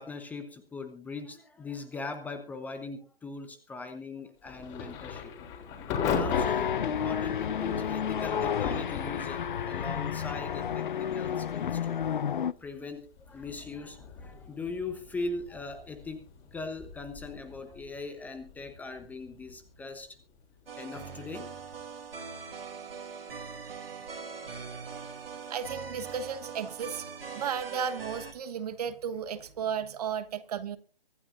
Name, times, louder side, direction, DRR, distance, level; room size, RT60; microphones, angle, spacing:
voice 1, 0.0-5.3 6.0-12.0 12.6-16.2 16.5-20.2 20.8-21.5, left 3 dB, 5° left, 0.9 m, -40 dB
Thunder / Rain, 4.4-21.1, left 6 dB, 20° left, 3.4 m, -39 dB
sound 1, 6.3-12.5, left 8 dB, 55° left, 0.6 m, -31 dB
sound 2, 20.7-28.3, right 5 dB, 70° right, 3.3 m, -42 dB
voice 2, 25.5-30.8, right 7 dB, 40° right, 1.3 m, -34 dB
24.5 x 11.5 x 2.6 m
figure-of-eight pair, 140°, 30 cm